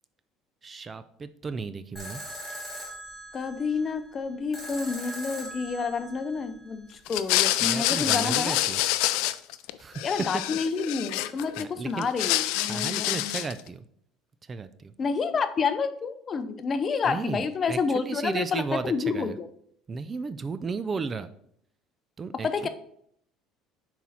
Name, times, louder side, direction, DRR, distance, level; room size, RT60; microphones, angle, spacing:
voice 1, 0.6-2.2 7.6-8.8 9.8-10.1 11.6-12.1 12.6-13.9 14.4-14.9 17.0-19.4 19.9-21.3 22.2-22.7, right 4 dB, 25° right, 13 dB, 0.3 m, -34 dB
sound 1, 2.0-7.0, equal, 5° right, 2.3 m, -41 dB
voice 2, 3.3-8.5 10.0-13.4 15.0-19.5 22.4-22.7, left 5 dB, 35° left, 10 dB, 0.6 m, -29 dB
sound 2, 7.1-9.7 10.0-11.6 12.0-13.6, left 15 dB, 80° left, 0.3 m, -27 dB
6.1 x 4.3 x 4.1 m, 0.68 s
cardioid pair, 115°, 0 cm